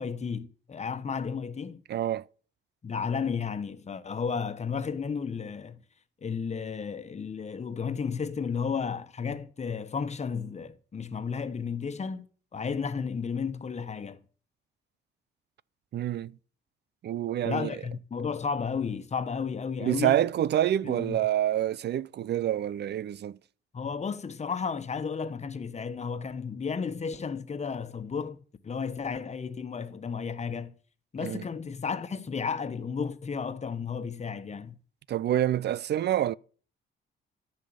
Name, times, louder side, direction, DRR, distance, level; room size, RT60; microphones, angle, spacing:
voice 1, 0.0-1.8 2.8-5.8 6.2-12.3 12.5-14.2 17.4-20.2 20.8-21.2 23.7-28.4 28.6-30.7 31.1-34.8, left 6 dB, 35° left, 1.3 m, -33 dB
voice 2, 1.9-2.3 15.9-16.4 17.0-17.7 19.8-23.4 31.2-31.4 35.1-36.4, right 11 dB, 60° right, 0.6 m, -27 dB
14.0 x 5.6 x 8.7 m
cardioid pair, 90°, 20 cm